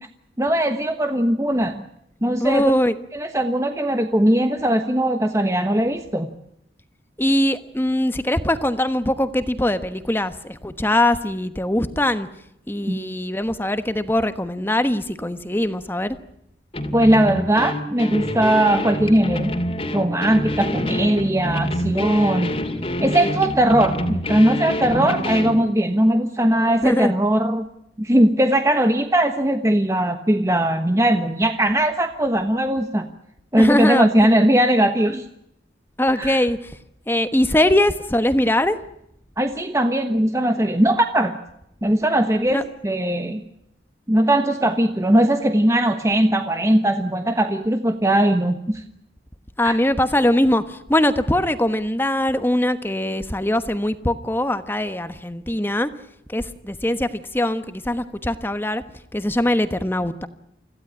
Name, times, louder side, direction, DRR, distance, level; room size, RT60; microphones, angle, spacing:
voice 1, 0.4-1.8 2.2-2.7 3.1-6.3 12.9-13.0 16.9-19.5 19.9-22.5 23.0-27.7 28.0-33.1 33.5-35.3 36.2-36.4 39.4-41.4 41.8-43.4 44.1-48.8 49.6-49.8, right 1 dB, 15° right, 6 dB, 1.2 m, -19 dB
voice 2, 2.4-2.9 7.2-12.3 12.7-16.2 26.8-27.1 33.6-34.3 36.0-36.8 37.1-38.8 42.5-42.6 49.6-55.9 56.3-58.8 59.1-60.3, left 1 dB, 10° left, 11 dB, 1.2 m, -21 dB
sound 1, 16.7-25.6, left 1 dB, 30° left, 2.6 m, -26 dB
26.0 x 16.0 x 9.9 m, 0.78 s
head